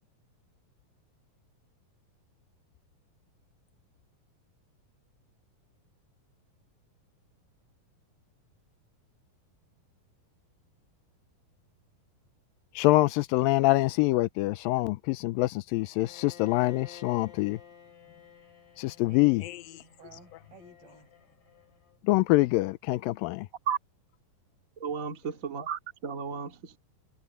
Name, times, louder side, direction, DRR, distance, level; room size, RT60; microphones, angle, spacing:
voice 1, 12.8-17.6 18.8-19.8 22.1-23.5, left 19 dB, 85° left, 2.3 m, -25 dB
Bowed string instrument, 16.0-22.0, left 7 dB, 60° left, 7.0 m, -53 dB
voice 2, 19.1-21.1, right 1 dB, 85° right, 9.8 m, -54 dB
voice 3, 24.8-26.8, right 7 dB, 25° right, 2.1 m, -33 dB
omnidirectional pair, 4.1 m